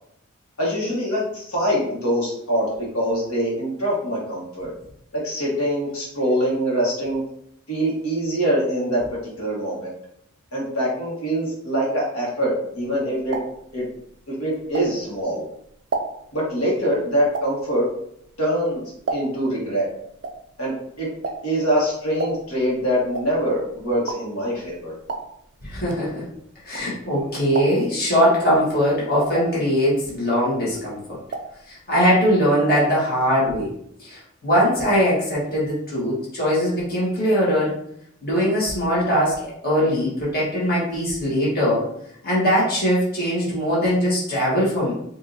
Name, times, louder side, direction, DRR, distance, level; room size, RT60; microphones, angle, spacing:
voice 1, 0.6-2.7 2.9-4.7 5.2-7.2 7.7-9.0 9.4-9.9 10.5-13.4 13.7-13.8 14.3-15.4 16.3-17.9 18.4-18.8 19.1-19.9 20.6-21.1 21.4-24.9, equal, 85° left, -5 dB, 1.4 m, -24 dB
sound 1, 12.8-15.3 15.7-19.6 19.9-27.2 27.5-28.0 28.5-30.2 30.5-31.6 31.9-32.0 32.2-32.3, right 3 dB, 50° right, 0.4 m, -33 dB
voice 2, 25.6-26.2 26.6-31.2 31.7-33.7 34.0-37.7 38.2-41.9 42.2-44.9, equal, 45° left, -7 dB, 1.4 m, -21 dB
4.8 x 2.7 x 2.7 m, 0.72 s
head